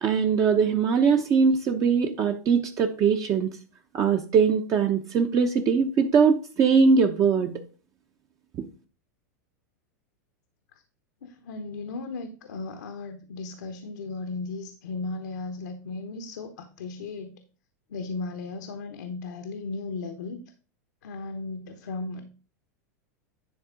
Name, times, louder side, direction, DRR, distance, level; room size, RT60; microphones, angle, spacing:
voice 1, 0.0-3.5 3.9-7.5 8.6-8.7, right 5 dB, 35° right, 4 dB, 0.9 m, -21 dB
voice 2, 11.2-17.4 17.9-20.4 21.0-22.2, left 3 dB, 85° left, 7 dB, 1.0 m, -36 dB
10.5 x 3.6 x 5.1 m, 0.37 s
hypercardioid pair, 110°, 9 cm